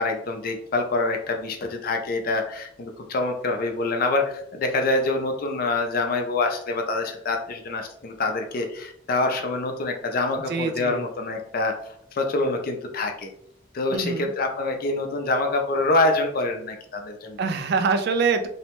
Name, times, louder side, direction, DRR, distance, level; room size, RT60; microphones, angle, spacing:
voice 1, 0.0-11.7 12.1-13.3 13.7-17.4, left 2 dB, 50° left, 4 dB, 0.4 m, -26 dB
voice 2, 10.5-11.0 13.9-14.3 17.4-18.5, right 4 dB, 60° right, 7 dB, 0.3 m, -24 dB
2.7 x 2.1 x 2.9 m, 0.69 s
head